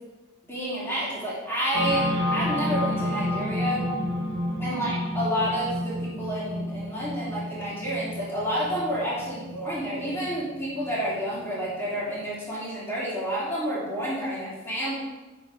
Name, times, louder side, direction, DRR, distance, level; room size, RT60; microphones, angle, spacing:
voice 1, 0.5-3.9 4.6-15.0, equal, 10° left, -8 dB, 3.1 m, -29 dB
sound 1, 1.7-11.4, left 1 dB, 20° right, 2.4 m, -30 dB
10.0 x 4.5 x 4.9 m, 1.1 s
head